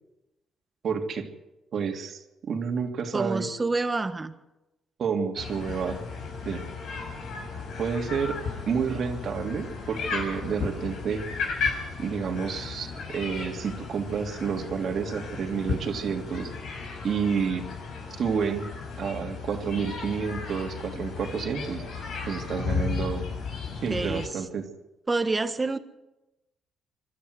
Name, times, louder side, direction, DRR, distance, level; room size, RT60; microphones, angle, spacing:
voice 1, 0.8-1.3 1.7-3.5 5.0-6.0 6.4-6.6 7.8-11.5 12.0-17.6 18.2-18.7 19.0-21.8 22.3-23.2 23.8-24.7, right 6 dB, 60° right, 4 dB, 3.0 m, -30 dB
voice 2, 3.1-4.3 23.9-24.3 25.1-25.8, right 3 dB, 25° right, 10 dB, 1.5 m, -27 dB
sound 1, 5.4-24.3, left 5 dB, 75° left, 6.4 m, -35 dB
27.0 x 12.5 x 8.1 m, 1.0 s
cardioid pair, 90°, 0 cm